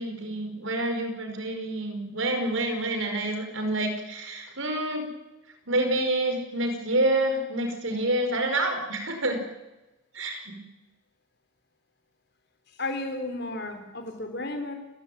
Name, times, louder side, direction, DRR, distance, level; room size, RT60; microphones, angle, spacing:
voice 1, 0.0-5.1 5.7-9.4 10.1-10.6, right 1 dB, 70° right, 5 dB, 5.0 m, -28 dB
voice 2, 12.8-14.7, left 2 dB, 55° left, 7 dB, 3.6 m, -33 dB
29.0 x 15.5 x 9.2 m, 1.0 s
head